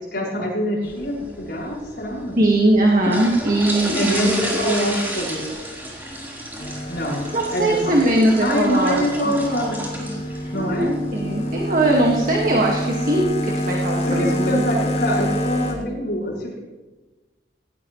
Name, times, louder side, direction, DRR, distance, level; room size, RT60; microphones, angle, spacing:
voice 1, 0.1-2.4 3.9-5.5 6.9-8.1 8.4-10.2 10.5-11.0 14.1-16.6, equal, 60° left, -3 dB, 5.6 m, -25 dB
sound 1, 0.8-13.2, equal, 10° right, 4.0 m, -32 dB
voice 2, 2.4-4.6 7.3-9.3 10.5-14.6, right 1 dB, 50° right, -1 dB, 1.8 m, -20 dB
sound 2, 6.6-15.7, equal, 40° left, 2.7 m, -27 dB
18.5 x 17.5 x 3.2 m, 1.2 s
head